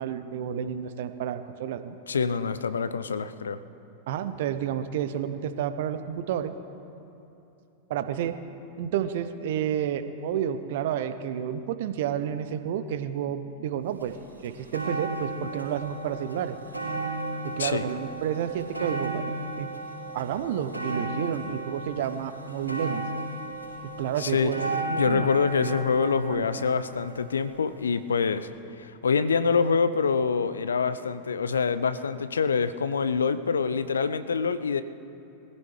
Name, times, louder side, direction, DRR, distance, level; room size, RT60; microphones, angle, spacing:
voice 1, 0.0-2.0 4.1-6.5 7.9-8.3 8.8-14.1 14.4-16.6 17.6-19.2 19.6-19.7 20.1-23.0 24.0-25.3 25.6-25.8 26.3-26.5, right 9 dB, 55° right, 11 dB, 0.8 m, -30 dB
voice 2, 2.1-3.6 17.6-17.9 24.2-24.5 25.0-28.5 28.8-34.8, left 5 dB, 70° left, 13 dB, 0.6 m, -25 dB
sound 1, 14.0-14.1 14.4-27.6 28.4-28.5, right 2 dB, 85° right, 4.2 m, -35 dB
22.0 x 15.5 x 3.3 m, 2.9 s
figure-of-eight pair, 90°, 0 cm